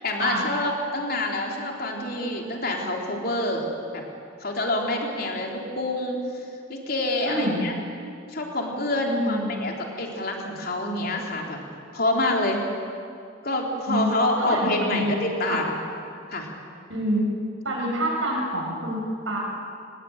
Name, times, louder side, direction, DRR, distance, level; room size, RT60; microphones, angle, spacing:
voice 1, 0.0-3.7 3.9-4.0 4.4-6.4 6.7-7.7 8.3-11.6 11.9-12.6 13.4-15.8 16.3-16.5, left 1 dB, 50° left, 0 dB, 3.8 m, -27 dB
voice 2, 7.2-7.7 9.1-9.6 13.9-14.1 14.4-15.1 15.4-15.6 16.9-17.3 17.6-19.4, right 1 dB, 90° right, -3 dB, 6.9 m, -27 dB
25.0 x 20.0 x 9.1 m, 2.5 s
head